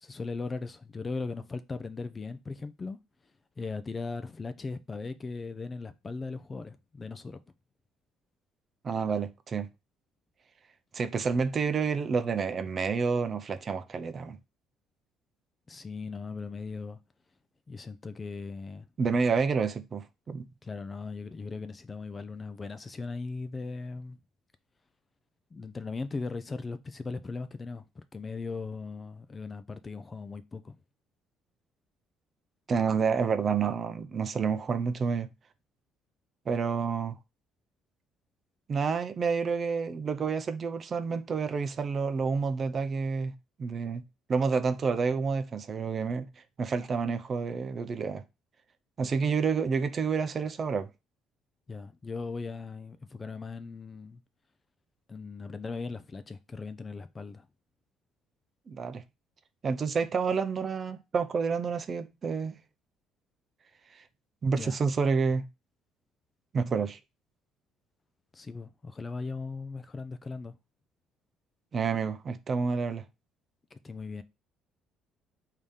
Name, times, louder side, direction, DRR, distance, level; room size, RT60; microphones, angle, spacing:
voice 1, 0.0-3.0 3.6-7.4 15.7-17.0 17.7-18.9 20.6-24.2 25.5-27.8 28.1-30.7 51.7-54.2 55.1-57.5 64.6-64.8 68.3-70.5 73.7-74.2, left 4 dB, 20° left, 0.4 m, -38 dB
voice 2, 8.8-9.7 10.9-14.4 19.0-20.5 32.7-35.3 36.5-37.2 38.7-43.3 43.6-44.0 44.3-46.3 46.6-48.2 49.0-50.9 58.7-59.0 59.6-62.5 63.9-64.0 64.4-65.4 66.5-67.0 71.7-73.0, right 5 dB, 35° right, 0.5 m, -29 dB
5.0 x 2.8 x 3.5 m
cardioid pair, 135°, 0 cm